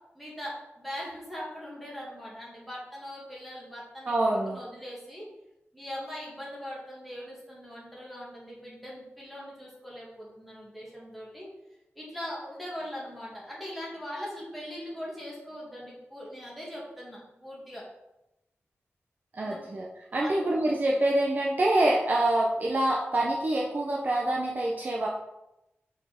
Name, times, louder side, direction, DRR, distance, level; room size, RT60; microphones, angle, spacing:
voice 1, 0.1-5.3 5.7-11.5 12.0-17.8 19.4-19.7 20.1-20.4, equal, ahead, -6 dB, 2.1 m, -41 dB
voice 2, 4.1-4.6 19.3-19.9 20.1-25.1, right 1 dB, 40° right, -2 dB, 0.8 m, -26 dB
5.3 x 4.3 x 5.2 m, 0.90 s
wide cardioid pair, 140°, 5 cm